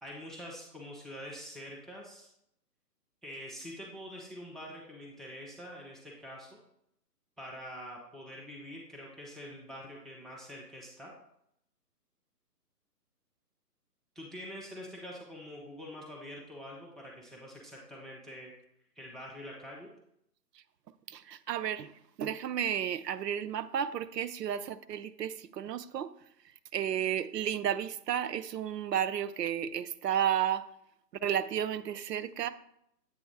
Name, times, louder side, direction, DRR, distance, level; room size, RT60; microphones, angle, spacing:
voice 1, 0.0-2.3 3.2-6.5 7.4-11.1 14.2-18.5 19.0-19.9, equal, ahead, -2 dB, 0.4 m, -45 dB
voice 2, 21.1-21.9 22.2-26.1 26.7-30.7 31.2-32.5, right 9 dB, 80° right, 15 dB, 0.6 m, -32 dB
7.8 x 3.2 x 4.5 m, 0.76 s
hypercardioid pair, 165°, 49 cm